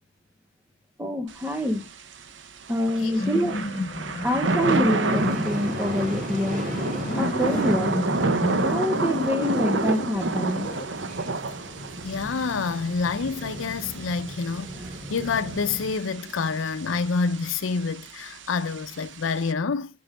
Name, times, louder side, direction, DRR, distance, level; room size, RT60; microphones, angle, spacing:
voice 1, 1.0-1.8 2.7-3.6 4.2-6.7 7.1-8.0 8.6-10.7, equal, 10° right, 0.7 m, -26 dB
Thunder / Rain, 1.3-19.5, right 3 dB, 65° right, 0.7 m, -31 dB
sound 1, 3.0-10.9, left 2 dB, 40° left, 1.0 m, -32 dB
sound 2, 5.1-15.9, equal, 40° right, 3.1 m, -36 dB
voice 2, 12.0-14.8 15.1-19.9, left 5 dB, 80° left, 0.5 m, -27 dB
7.6 x 5.4 x 4.9 m
head